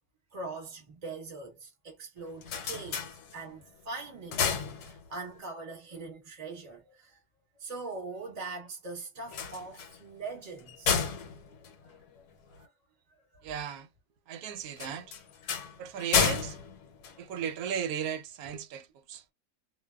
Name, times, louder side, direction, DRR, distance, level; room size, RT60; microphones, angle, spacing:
voice 1, 0.3-7.2 7.6-11.2 11.6-11.7 12.1-12.2 12.6-12.7 13.1-13.4 17.1-17.3, right 3 dB, 30° right, 1.0 m, -42 dB
sound 1, 2.2-3.7 4.1-5.4 9.2-12.6 14.7-17.8, left 6 dB, 80° left, 1.2 m, -32 dB
voice 2, 13.4-13.9 14.3-15.1 15.8-16.6 17.2-19.2, right 8 dB, 75° right, 1.0 m, -36 dB
2.5 x 2.2 x 2.2 m
omnidirectional pair, 1.6 m